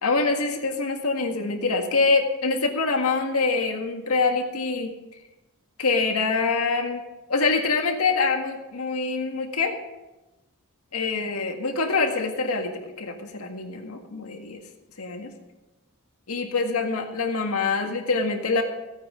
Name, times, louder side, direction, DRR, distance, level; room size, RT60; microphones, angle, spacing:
voice 1, 0.0-4.9 5.8-7.0 7.3-9.7 10.9-14.6 15.0-15.3 16.3-18.6, left 4 dB, 80° left, 4 dB, 1.8 m, -25 dB
15.5 x 9.2 x 5.1 m, 1.0 s
head